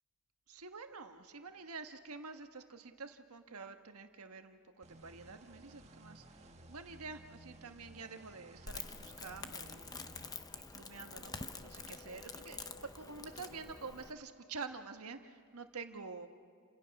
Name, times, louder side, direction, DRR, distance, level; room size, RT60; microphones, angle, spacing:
voice 1, 0.5-6.2 6.7-9.9 10.5-16.3, right 4 dB, 85° right, 6 dB, 1.4 m, -48 dB
sound 1, 4.8-10.3, right 1 dB, 30° right, 1.5 m, -57 dB
Crackle, 8.7-14.1, left 4 dB, 15° left, 0.7 m, -47 dB
29.5 x 27.0 x 6.0 m, 2.2 s
head